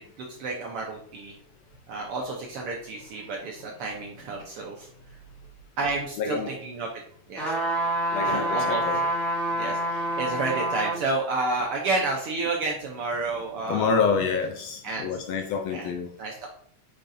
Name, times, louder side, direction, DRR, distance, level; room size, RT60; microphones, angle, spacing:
voice 1, 0.2-1.3 1.9-4.9 5.8-6.9 7.3-7.5 8.2-8.8 9.6-14.0 14.8-15.1 15.7-15.9 16.2-16.5, right 3 dB, 70° right, 0 dB, 1.4 m, -30 dB
voice 2, 6.2-6.5 8.1-9.1 13.7-16.1, left 5 dB, 75° left, 5 dB, 1.6 m, -27 dB
sound 1, 7.4-11.0 11.5-11.6, right 1 dB, ahead, 1.7 m, -27 dB
8.8 x 5.3 x 2.6 m, 0.65 s
omnidirectional pair, 3.4 m